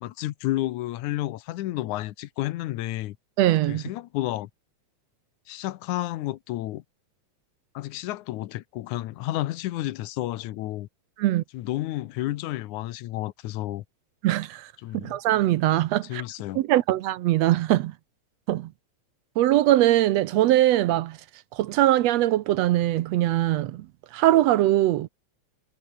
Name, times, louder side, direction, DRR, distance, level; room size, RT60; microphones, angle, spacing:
voice 1, 0.0-3.2 3.7-4.5 5.5-6.8 7.7-10.9 11.5-13.8 14.8-15.2 16.0-16.6, left 15 dB, 90° left, 2.3 m, -31 dB
voice 2, 3.4-3.8 11.2-11.4 14.2-14.7 15.0-16.2 16.6-17.9 18.5-18.7 19.4-21.2 21.5-23.8 24.1-25.1, right 14 dB, 70° right, 1.8 m, -21 dB
omnidirectional pair, 3.3 m